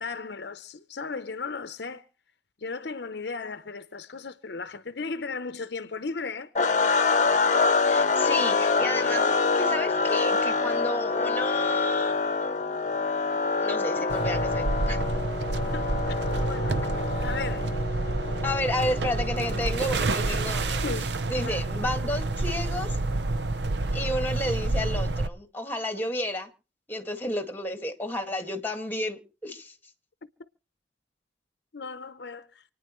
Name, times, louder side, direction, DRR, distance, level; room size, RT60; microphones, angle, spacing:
voice 1, 0.0-2.1 2.6-6.5 14.0-14.1 15.7-15.9 16.3-16.8 17.2-17.7 20.8-21.1 21.4-21.7 31.7-32.6, left 4 dB, 65° left, 0.8 m, -36 dB
sound 1, 6.5-20.6, left 4 dB, 40° left, 0.9 m, -26 dB
voice 2, 7.8-12.1 12.4-13.0 13.5-15.0 18.4-20.8 21.3-23.0 23.9-26.5 26.9-29.7, left 1 dB, 10° left, 1.9 m, -32 dB
sound 2, 14.1-25.3, right 2 dB, 65° right, 0.7 m, -28 dB
28.5 x 10.0 x 3.1 m
head